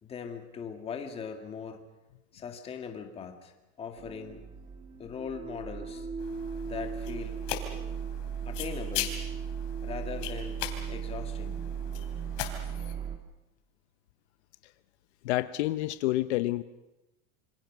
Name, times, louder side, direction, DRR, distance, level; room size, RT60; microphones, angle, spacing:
voice 1, 0.0-1.8 2.3-4.5 5.0-6.1 6.7-7.4 8.4-9.2 9.8-11.6, left 6 dB, 15° left, 5 dB, 2.0 m, -40 dB
sound 1, 4.0-13.2, right 7 dB, 20° right, 1.8 m, -37 dB
sound 2, 6.2-12.9, left 11 dB, 45° left, 3.4 m, -40 dB
voice 2, 15.2-16.6, left 16 dB, 65° left, 13 dB, 0.9 m, -28 dB
27.0 x 25.0 x 6.1 m, 1.0 s
supercardioid pair, 175°, 35 cm